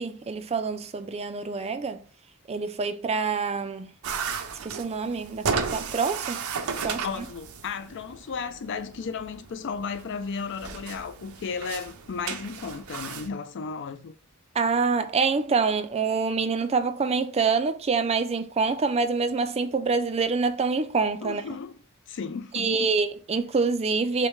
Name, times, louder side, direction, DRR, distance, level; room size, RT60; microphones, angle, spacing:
voice 1, 0.0-2.0 2.5-3.9 4.6-6.4 6.8-7.1 14.6-21.4 22.5-24.3, right 4 dB, 30° right, 0.4 m, -26 dB
sound 1, 4.0-13.3, right 5 dB, 85° right, 0.6 m, -34 dB
voice 2, 6.9-14.1 21.2-21.8 22.1-22.9, left 5 dB, 55° left, 0.4 m, -34 dB
6.4 x 2.2 x 3.1 m
head